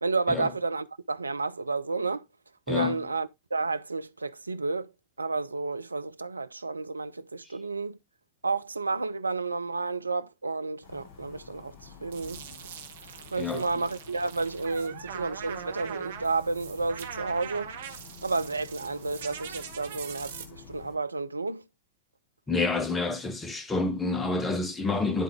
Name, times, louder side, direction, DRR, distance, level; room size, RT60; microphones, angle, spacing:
voice 1, 0.0-2.2 2.7-4.9 5.2-8.0 8.4-11.7 12.0-12.4 13.3-17.7 18.2-21.6, right 3 dB, 80° right, 0.4 m, -31 dB
voice 2, 2.7-3.1 13.4-13.6 22.5-25.2, left 3 dB, 15° left, 1.2 m, -28 dB
sound 1, 10.8-20.9, left 5 dB, 55° left, 3.4 m, -50 dB
sound 2, 12.1-20.4, right 8 dB, 60° right, 1.1 m, -42 dB
11.0 x 3.7 x 3.6 m
figure-of-eight pair, 90°, 0 cm